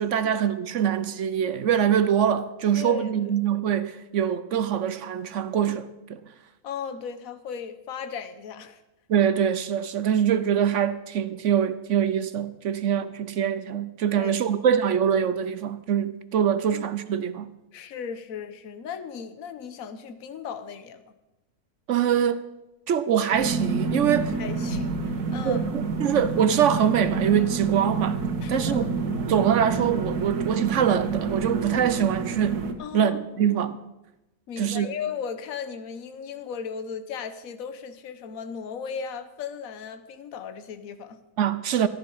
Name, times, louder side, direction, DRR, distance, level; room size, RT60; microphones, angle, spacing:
voice 1, 0.0-6.2 9.1-17.5 21.9-22.4 22.9-24.3 25.4-28.2 28.5-28.8 29.3-32.6 32.9-33.8 34.6-34.9 41.4-41.9, right 8 dB, 65° right, 0.9 m, -24 dB
voice 2, 2.7-3.3 6.6-8.8 14.1-14.7 16.7-16.8 17.7-21.0 24.4-25.6 28.4-28.9 32.8-33.5 34.5-41.2, left 7 dB, 65° left, 1.3 m, -36 dB
sound 1, 23.3-32.7, right 4 dB, 85° right, 1.8 m, -28 dB
14.5 x 10.5 x 5.5 m
omnidirectional pair, 1.6 m